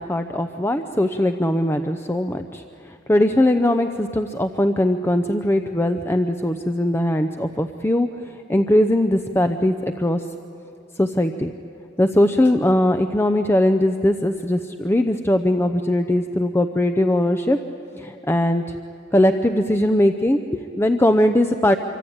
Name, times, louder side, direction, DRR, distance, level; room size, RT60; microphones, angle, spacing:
voice 1, 0.0-10.2 11.0-11.5 12.0-17.6 17.9-18.7 19.1-21.8, left 1 dB, 15° left, 7 dB, 0.7 m, -20 dB
26.5 x 24.5 x 8.7 m, 2.7 s
head